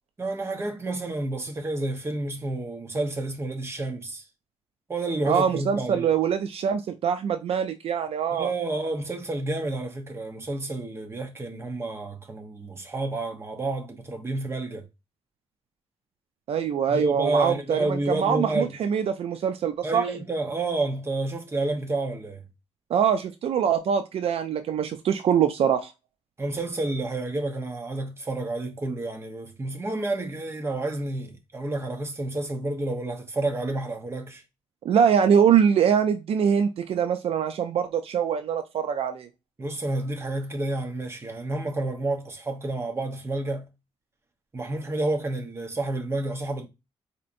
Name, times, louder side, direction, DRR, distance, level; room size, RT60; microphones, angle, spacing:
voice 1, 0.2-4.2 4.9-6.1 8.3-14.9 16.9-18.7 19.8-22.4 26.4-34.4 39.6-43.7 44.5-46.7, right 2 dB, 25° right, 0.9 m, -30 dB
voice 2, 5.3-8.5 16.5-20.0 22.9-25.9 34.8-39.3, right 8 dB, 65° right, 0.4 m, -23 dB
4.1 x 2.9 x 2.5 m
cardioid pair, 115°, 11 cm